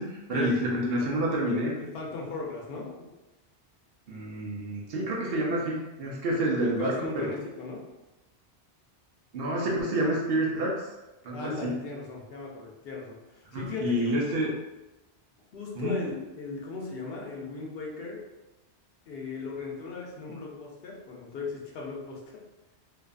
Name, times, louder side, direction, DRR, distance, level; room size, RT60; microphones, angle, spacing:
voice 1, 0.0-1.7 4.1-7.3 9.3-10.7 11.2-11.8 13.5-14.5 15.8-16.0, right 1 dB, 65° right, -3 dB, 0.7 m, -28 dB
voice 2, 1.5-3.1 6.6-7.8 11.3-14.3 15.5-18.2 19.1-22.4, left 4 dB, 65° left, -2 dB, 0.7 m, -37 dB
2.5 x 2.3 x 2.3 m, 1.0 s
omnidirectional pair, 1.1 m